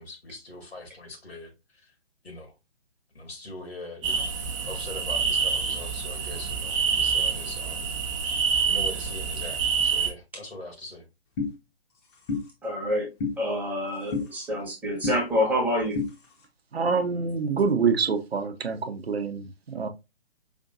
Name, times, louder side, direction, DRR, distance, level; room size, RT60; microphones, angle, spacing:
voice 1, 0.0-1.5 2.2-2.5 3.1-4.3 4.6-7.8 8.7-11.0, left 2 dB, 80° left, 1.6 m, -41 dB
sound 1, 4.0-10.1, right 5 dB, 30° right, 0.7 m, -27 dB
sound 2, 11.4-11.5 12.3-12.4 13.2-13.3 14.1-14.3 15.0-15.2 15.9-16.1, left 4 dB, 25° left, 0.8 m, -27 dB
voice 2, 12.6-13.1 13.4-16.0, left 1 dB, 5° right, 1.0 m, -27 dB
voice 3, 16.7-19.9, right 5 dB, 80° right, 0.8 m, -26 dB
5.1 x 2.6 x 2.5 m
figure-of-eight pair, 135°, 31 cm